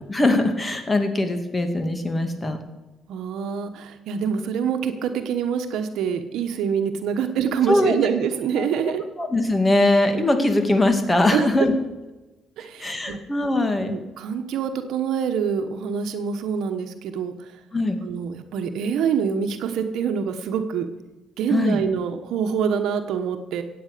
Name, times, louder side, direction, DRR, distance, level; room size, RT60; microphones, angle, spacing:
voice 1, 0.1-2.6 7.7-8.0 8.6-8.7 9.2-11.7 12.8-14.0 17.7-18.0 21.5-21.8, left 2 dB, 15° left, 7 dB, 2.3 m, -21 dB
voice 2, 3.1-9.0 11.3-11.7 12.6-13.2 13.8-17.5 18.0-20.9 21.4-23.6, right 7 dB, 75° right, 7 dB, 1.2 m, -25 dB
16.0 x 8.9 x 6.8 m, 1.1 s
cardioid pair, 100°, 0 cm